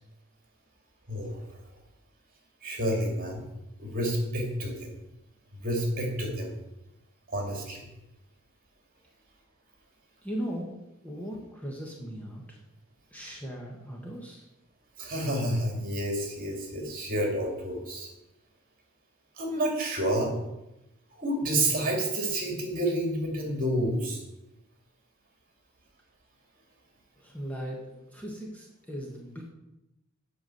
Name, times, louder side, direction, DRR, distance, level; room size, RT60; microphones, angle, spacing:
voice 1, 1.1-1.4 2.6-3.4 3.8-4.9 5.5-6.5 7.3-7.8 15.0-18.1 19.4-20.3 21.1-24.2, right 1 dB, 45° right, 1 dB, 3.0 m, -29 dB
voice 2, 10.2-10.8 11.0-12.6 13.1-14.4 27.2-29.5, equal, 5° left, -1 dB, 1.5 m, -38 dB
8.2 x 6.0 x 7.9 m, 0.93 s
head